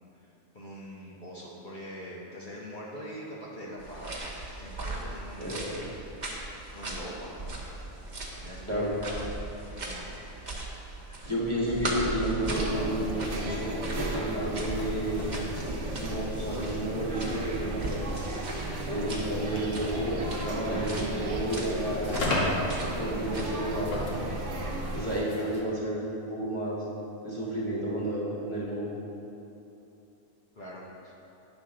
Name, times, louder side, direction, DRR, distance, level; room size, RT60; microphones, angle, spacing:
voice 1, 0.1-4.2 4.5-5.8 6.7-7.5 8.3-9.2 9.7-10.2 30.5-31.1, equal, 45° left, -6 dB, 1.1 m, -43 dB
sound 1, 3.8-23.6, right 2 dB, 40° right, 1.0 m, -39 dB
voice 2, 5.4-5.8 8.7-8.9 11.2-15.4 16.0-18.0 18.8-22.6 23.0-24.0 24.9-26.8 27.2-28.9, right 1 dB, 25° right, -7 dB, 1.4 m, -31 dB
sound 2, 12.4-25.2, right 2 dB, 75° right, 1.2 m, -35 dB
sound 3, 14.0-25.6, left 1 dB, 90° left, 1.5 m, -38 dB
9.6 x 6.0 x 3.8 m, 3.0 s
omnidirectional pair, 1.3 m